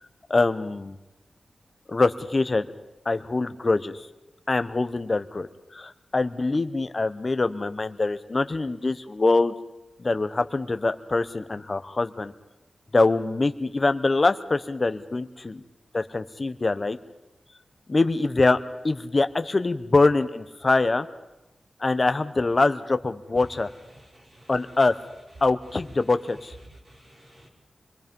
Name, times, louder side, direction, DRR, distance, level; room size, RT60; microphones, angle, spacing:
voice 1, 0.3-1.0 1.9-2.7 3.1-4.0 4.5-5.5 5.7-9.5 10.0-12.3 12.9-15.6 15.9-17.0 17.9-18.6 18.8-21.1 21.8-23.7 24.5-24.9 25.4-26.5, left 3 dB, 30° left, 10 dB, 0.9 m, -24 dB
voice 2, 23.9-24.6 26.6-27.5, right 1 dB, 40° right, -2 dB, 5.5 m, -50 dB
26.5 x 21.0 x 5.3 m, 1.0 s
wide cardioid pair, 140°, 0 cm